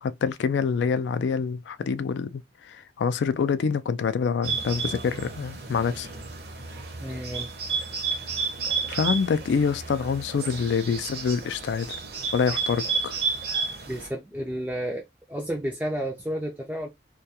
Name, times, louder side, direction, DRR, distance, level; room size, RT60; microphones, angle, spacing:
voice 1, 0.0-6.1 8.9-12.0 12.3-13.2, left 6 dB, 75° left, 0.3 m, -26 dB
Bird, 4.4-14.1, right 5 dB, 55° right, 0.6 m, -32 dB
voice 2, 7.0-7.5 13.9-16.9, equal, 10° right, 0.3 m, -31 dB
2.2 x 2.2 x 2.7 m
head